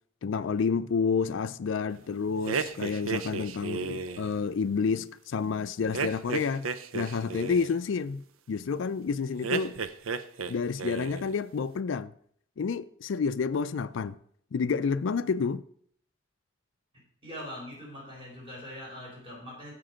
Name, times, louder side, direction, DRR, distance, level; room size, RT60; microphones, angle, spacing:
voice 1, 0.2-6.7 6.9-9.8 10.5-12.1 12.6-14.2 14.5-15.6, left 5 dB, 65° left, 0.4 m, -29 dB
sound 1, 2.5-4.3 5.9-7.8 9.4-10.5 10.8-11.3, right 5 dB, 85° right, 0.6 m, -33 dB
voice 2, 16.9-19.7, left 1 dB, 25° right, 4.7 m, -42 dB
15.0 x 5.2 x 5.1 m
head